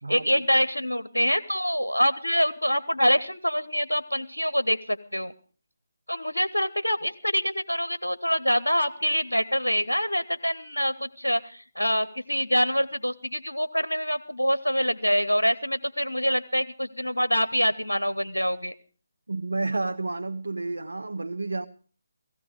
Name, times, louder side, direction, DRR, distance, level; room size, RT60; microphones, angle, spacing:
voice 1, 0.1-5.3 6.1-18.7, equal, 90° left, 0.8 m, -25 dB
voice 2, 19.3-21.7, right 3 dB, 75° right, 0.8 m, -30 dB
16.5 x 16.0 x 4.9 m
figure-of-eight pair, 150°, 0 cm